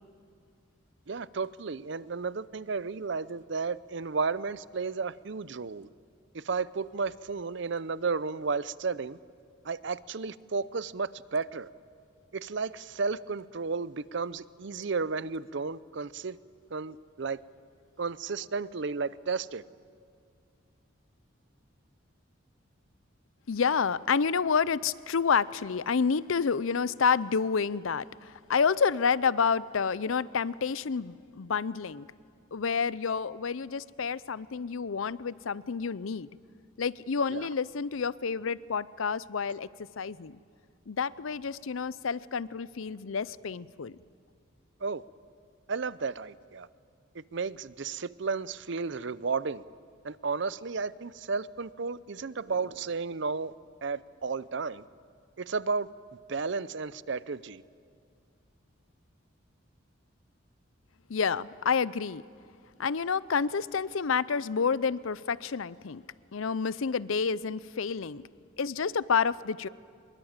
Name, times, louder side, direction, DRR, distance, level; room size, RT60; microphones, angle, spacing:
voice 1, 1.1-5.9 6.3-9.2 9.6-11.7 12.3-16.4 16.7-17.4 18.0-19.6 37.3-37.5 44.8-45.0 45.7-46.7 47.1-49.6 50.0-53.5 53.8-54.9 55.4-55.9 56.3-57.6, right 4 dB, 60° right, 18 dB, 0.6 m, -33 dB
voice 2, 23.5-32.1 32.5-36.3 36.8-39.7 40.0-40.4 40.9-43.9 61.1-62.2 62.8-66.0 66.3-68.2 68.6-69.7, left 5 dB, 80° left, 19 dB, 0.6 m, -29 dB
25.0 x 22.5 x 8.9 m, 2.3 s
head